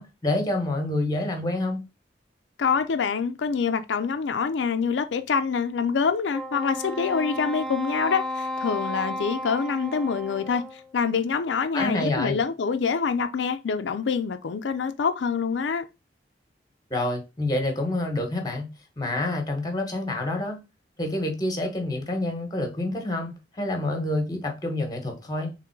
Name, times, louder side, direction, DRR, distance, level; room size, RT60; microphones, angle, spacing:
voice 1, 0.0-1.8 11.7-12.4 16.9-18.7 19.0-20.6 21.0-25.5, left 1 dB, 20° left, 1.0 m, -27 dB
voice 2, 2.6-15.9, left 5 dB, 90° left, 0.4 m, -26 dB
Wind instrument woodwind instrument, 6.3-10.9, equal, 5° left, 0.3 m, -33 dB
3.7 x 3.1 x 4.4 m
head